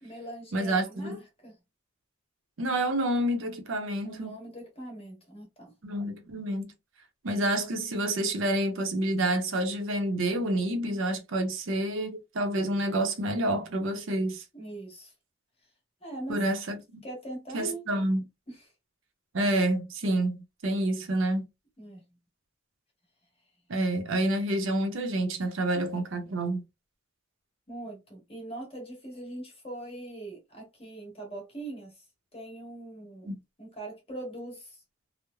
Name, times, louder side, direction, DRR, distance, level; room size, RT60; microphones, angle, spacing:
voice 1, 0.0-1.5 4.0-5.8 14.5-15.1 16.0-16.4 17.0-17.8 18.5-18.6 21.8-22.0 27.7-32.0 32.3-34.8, right 1 dB, 30° left, 1.3 m, -41 dB
voice 2, 0.5-1.2 2.6-4.4 5.8-6.7 7.2-14.4 16.3-17.0 17.5-18.2 19.3-21.5 23.7-26.6 33.3-33.4, right 1 dB, 65° right, 0.6 m, -28 dB
3.0 x 2.0 x 2.2 m
head